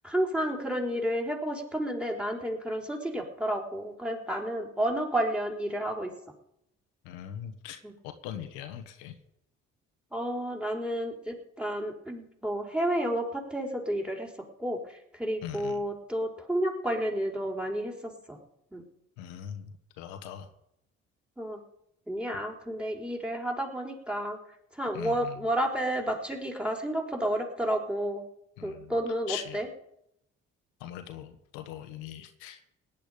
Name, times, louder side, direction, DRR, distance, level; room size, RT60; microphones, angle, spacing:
voice 1, 0.0-6.1 7.8-7.9 10.1-14.3 14.6-18.4 18.7-18.8 21.4-21.6 22.1-24.4 24.7-28.2 28.6-29.7, right 1 dB, 5° right, 2 dB, 4.3 m, -31 dB
voice 2, 7.0-9.1 15.4-15.8 19.2-20.5 22.3-22.4 24.9-25.4 28.6-29.0 29.3-29.6 30.8-32.6, left 10 dB, 85° left, 6 dB, 1.5 m, -41 dB
17.5 x 10.5 x 5.2 m, 0.77 s
hypercardioid pair, 55°, 32 cm